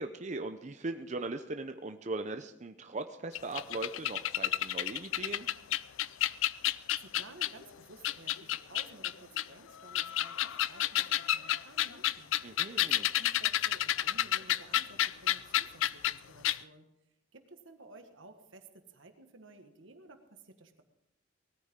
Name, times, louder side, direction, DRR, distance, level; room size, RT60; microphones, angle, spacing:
voice 1, 0.0-5.5 12.4-13.1, right 2 dB, 35° right, 7 dB, 0.6 m, -39 dB
sound 1, 3.3-7.6 8.0-9.4 9.9-16.2 16.4-16.6, left 13 dB, 85° left, 0.4 m, -30 dB
voice 2, 6.6-12.4 12.8-16.9 17.3-20.8, right 3 dB, 85° right, 6 dB, 1.6 m, -54 dB
19.5 x 13.5 x 3.7 m, 0.85 s
head